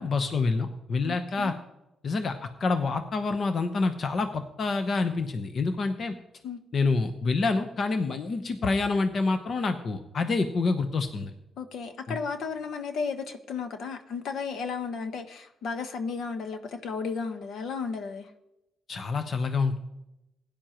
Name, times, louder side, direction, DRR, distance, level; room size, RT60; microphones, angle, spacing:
voice 1, 0.0-1.5 2.0-6.1 6.7-11.3 12.1-12.2 18.9-19.8, left 3 dB, 45° left, 7 dB, 0.9 m, -27 dB
voice 2, 1.0-1.6 6.4-6.6 11.6-18.3, left 5 dB, 70° left, 7 dB, 1.2 m, -34 dB
16.5 x 10.5 x 3.0 m, 0.90 s
cardioid pair, 90°, 0 cm